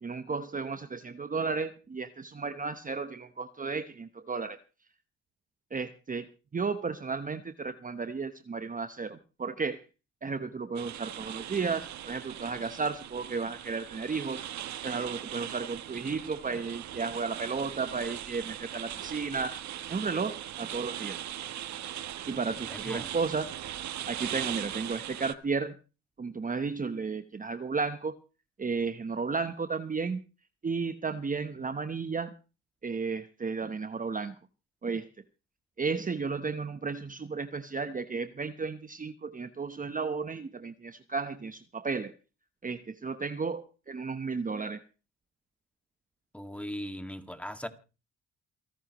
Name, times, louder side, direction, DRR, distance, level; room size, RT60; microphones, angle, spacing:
voice 1, 0.0-4.6 5.7-9.8 10.2-14.4 14.8-19.6 19.9-21.2 22.3-23.5 24.1-25.8 26.2-28.2 28.6-30.2 30.6-32.3 32.8-34.3 34.8-35.1 35.8-42.1 42.6-44.8, right 4 dB, 25° right, 1.1 m, -33 dB
sound 1, 10.8-25.3, right 11 dB, 65° right, 1.1 m, -39 dB
voice 2, 22.7-23.1 46.3-47.7, equal, 5° left, 2.1 m, -39 dB
29.0 x 11.0 x 3.1 m
cardioid pair, 90°, 30 cm